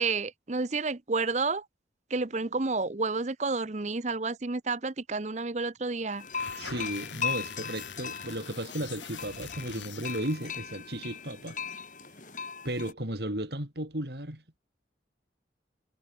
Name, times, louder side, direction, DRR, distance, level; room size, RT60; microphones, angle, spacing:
voice 1, 0.0-1.6 2.1-6.2, right 3 dB, 40° right, 0.8 m, -30 dB
sound 1, 6.2-10.6, left 6 dB, 90° left, 7.5 m, -44 dB
sound 2, 6.2-12.9, left 6 dB, 45° left, 6.2 m, -38 dB
voice 2, 6.6-11.6 12.6-14.6, right 1 dB, 60° right, 4.5 m, -35 dB
head